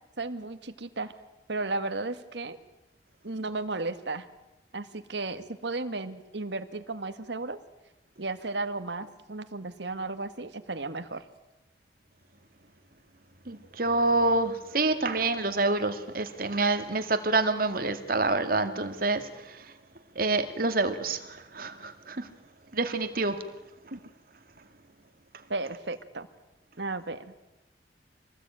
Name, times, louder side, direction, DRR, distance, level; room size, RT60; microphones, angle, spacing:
voice 1, 0.2-1.1 1.5-2.6 3.2-4.3 4.7-7.6 8.2-11.2 23.9-24.0 25.5-26.3 26.8-27.3, right 3 dB, 70° right, 9 dB, 1.6 m, -34 dB
voice 2, 13.5-19.3 20.2-21.2 21.5-22.3 22.7-23.4, right 3 dB, 50° right, 8 dB, 2.1 m, -27 dB
26.0 x 19.5 x 9.0 m, 0.98 s
head